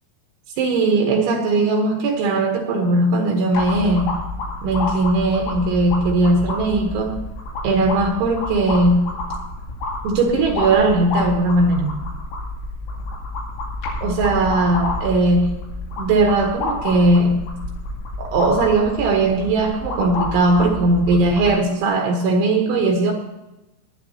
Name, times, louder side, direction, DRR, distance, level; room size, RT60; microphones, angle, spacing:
voice 1, 0.6-4.1 4.6-7.3 7.6-9.1 10.0-12.0 14.0-15.5 16.0-17.4 18.2-23.1, right 2 dB, 75° right, 3 dB, 3.2 m, -18 dB
sound 1, 3.5-21.6, left 2 dB, 85° left, 5.1 m, -29 dB
19.0 x 11.0 x 2.8 m, 1.0 s
omnidirectional pair, 6.0 m